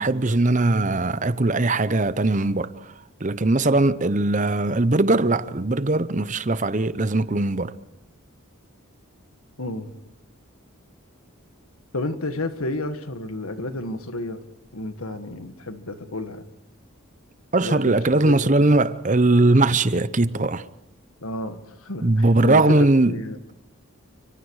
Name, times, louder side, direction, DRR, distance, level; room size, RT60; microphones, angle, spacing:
voice 1, 0.0-2.7 3.2-7.7 17.5-20.6 22.0-23.2, right 2 dB, 35° right, 0.8 m, -20 dB
voice 2, 9.6-9.9 11.9-14.4 14.7-16.5 17.6-18.7 21.2-22.8 23.1-23.4, left 2 dB, 80° left, 1.9 m, -31 dB
29.5 x 25.0 x 4.9 m
head